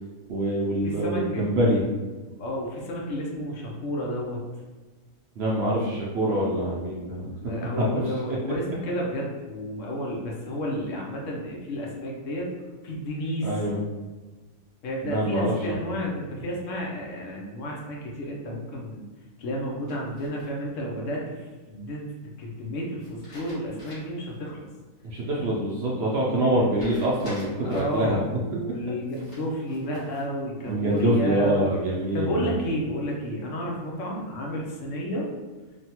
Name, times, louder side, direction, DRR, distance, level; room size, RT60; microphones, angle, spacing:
voice 1, 0.3-1.8 5.4-7.3 7.8-8.0 13.4-13.8 15.0-15.5 15.9-16.0 25.0-28.2 30.7-32.5, right 1 dB, 65° right, -4 dB, 0.7 m, -25 dB
voice 2, 0.8-1.4 2.4-4.4 7.4-12.5 12.8-13.6 14.8-19.1 19.4-24.7 26.4-26.7 27.6-31.7 32.1-35.3, equal, 70° left, -2 dB, 1.0 m, -31 dB
sound 1, 19.9-20.8 23.0-24.3 24.7-24.8 26.7-28.0 29.1-30.3 30.7-31.3, equal, 35° left, 1.3 m, -46 dB
3.3 x 2.2 x 2.8 m, 1.3 s
omnidirectional pair, 1.4 m